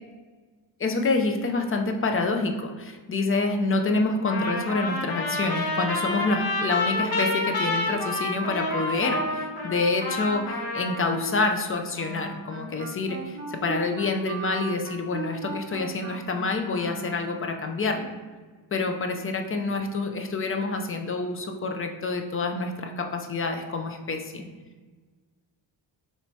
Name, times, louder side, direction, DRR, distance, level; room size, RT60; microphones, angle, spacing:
voice 1, 0.8-18.2 18.7-24.4, left 3 dB, 30° left, 5 dB, 0.4 m, -27 dB
Trumpet, 4.3-11.3, left 2 dB, 55° left, 0.8 m, -29 dB
Wind instrument woodwind instrument, 11.9-17.6, right 5 dB, 35° right, 0.6 m, -38 dB
3.1 x 2.7 x 4.4 m, 1.4 s
wide cardioid pair, 110°, 44 cm